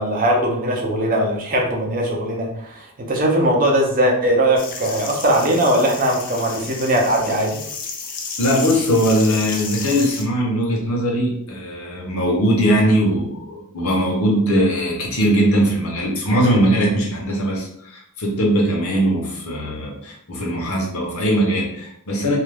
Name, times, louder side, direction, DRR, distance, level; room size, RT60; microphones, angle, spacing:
voice 1, 0.0-7.6, right 1 dB, 40° right, 0 dB, 0.5 m, -20 dB
sound 1, 4.6-10.2, left 5 dB, 40° left, 0.4 m, -32 dB
voice 2, 8.4-22.4, equal, 75° left, 0 dB, 0.8 m, -20 dB
2.4 x 2.2 x 3.3 m, 0.69 s
head